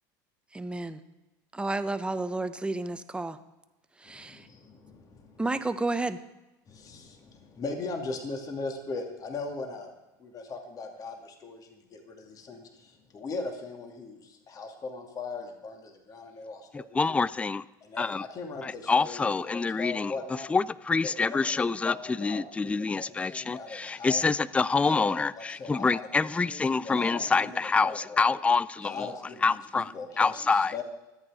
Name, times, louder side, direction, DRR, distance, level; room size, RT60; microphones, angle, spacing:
voice 1, 0.5-1.0 1.5-3.4 4.0-4.5 5.4-6.2, right 2 dB, 10° right, 10 dB, 1.1 m, -31 dB
voice 2, 4.1-5.4 6.7-9.9 10.2-17.3 17.8-20.5 21.0-24.2 24.8-28.3 28.8-30.8, left 3 dB, 35° left, 4 dB, 2.6 m, -39 dB
voice 3, 16.7-17.6 18.0-18.2 18.6-20.1 20.5-29.1 29.4-30.7, left 4 dB, 10° left, 20 dB, 0.4 m, -26 dB
23.5 x 8.8 x 5.0 m, 1.0 s
supercardioid pair, 95°, 10 cm